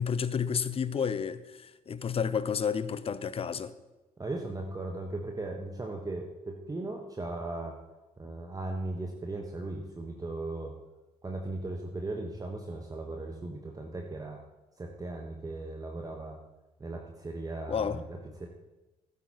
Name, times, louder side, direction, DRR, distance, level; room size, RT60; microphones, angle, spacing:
voice 1, 0.0-3.7 17.7-18.0, left 7 dB, 30° left, 0.7 m, -31 dB
voice 2, 4.2-7.8 8.2-10.7 11.2-14.4 14.8-16.4 16.8-18.5, right 2 dB, 20° right, 1.3 m, -37 dB
14.5 x 12.0 x 3.0 m
figure-of-eight pair, 45°, 19 cm